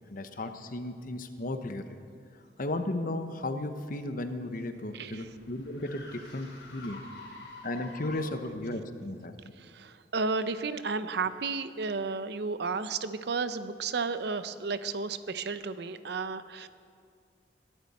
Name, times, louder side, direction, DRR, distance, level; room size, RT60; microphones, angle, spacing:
voice 1, 0.1-2.0 2.6-7.0 7.6-9.5, left 1 dB, 50° left, 8 dB, 1.0 m, -35 dB
sound 1, 4.4-8.6, left 2 dB, 90° left, 3.8 m, -48 dB
voice 2, 4.9-5.3 9.6-16.7, right 4 dB, 70° right, 12 dB, 0.7 m, -33 dB
21.5 x 12.0 x 4.3 m, 2.2 s
head